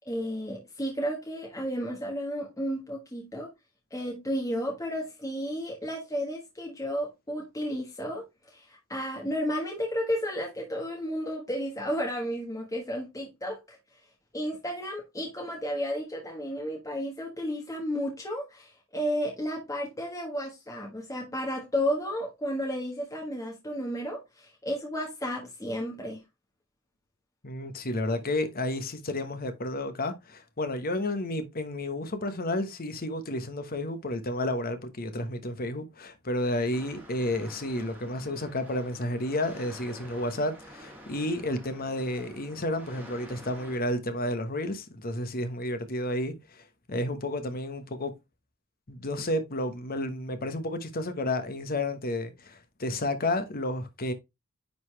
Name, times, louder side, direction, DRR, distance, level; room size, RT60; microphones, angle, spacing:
voice 1, 0.0-3.5 3.9-8.2 8.5-13.8 14.3-26.2, equal, 15° left, 1.3 m, -32 dB
voice 2, 27.4-48.1 48.9-54.1, left 1 dB, 45° left, 1.1 m, -31 dB
sound 1, 36.7-43.8, equal, 10° right, 2.0 m, -48 dB
9.6 x 4.0 x 3.2 m
head